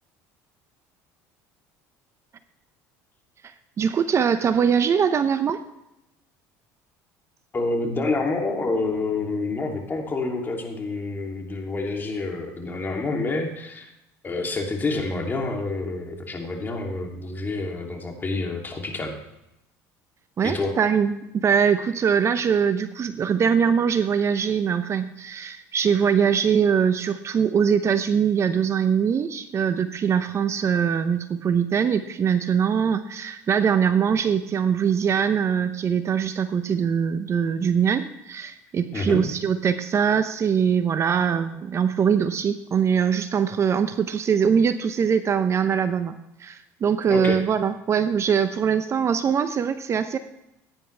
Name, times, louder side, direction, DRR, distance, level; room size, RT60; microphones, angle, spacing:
voice 1, 3.4-5.6 20.4-50.2, right 7 dB, 40° right, 11 dB, 0.8 m, -22 dB
voice 2, 7.5-13.9 14.2-19.2 20.4-20.7 38.9-39.2 47.1-47.4, left 3 dB, 25° left, 1 dB, 2.9 m, -28 dB
15.5 x 10.0 x 3.4 m, 0.86 s
supercardioid pair, 90°, 8 cm